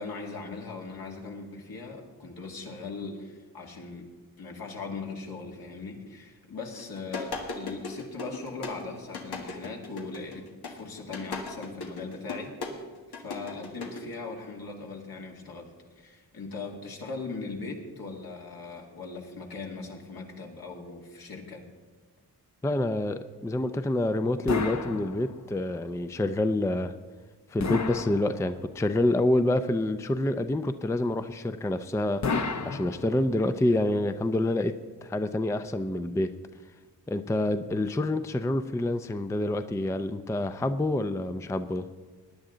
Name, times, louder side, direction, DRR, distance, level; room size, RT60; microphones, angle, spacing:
voice 1, 0.0-4.1 4.4-12.8 13.1-21.6, left 3 dB, 65° left, 0 dB, 2.4 m, -39 dB
sound 1, 6.7-14.1, left 3 dB, 85° left, 1.7 m, -37 dB
voice 2, 22.6-26.9 27.5-32.2 32.7-34.7 35.0-36.3 37.1-41.9, left 1 dB, 10° left, 10 dB, 0.4 m, -27 dB
sound 2, 24.5-25.7 27.6-28.8 32.2-33.5, left 4 dB, 45° left, 0.9 m, -32 dB
18.5 x 10.0 x 3.9 m, 1.4 s
cardioid pair, 95°, 38 cm